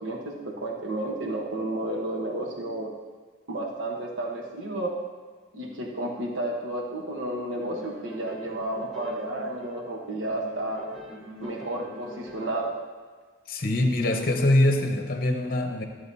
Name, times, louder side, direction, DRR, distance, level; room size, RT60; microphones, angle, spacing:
voice 1, 0.0-2.9 3.5-4.9 5.5-10.9 11.4-12.7, right 1 dB, 85° right, 0 dB, 1.1 m, -32 dB
sound 1, 7.6-9.9 10.3-12.7, left 1 dB, ahead, 1.1 m, -44 dB
voice 2, 13.5-15.8, left 1 dB, 45° left, 4 dB, 0.9 m, -23 dB
12.5 x 7.7 x 2.7 m, 1.5 s
head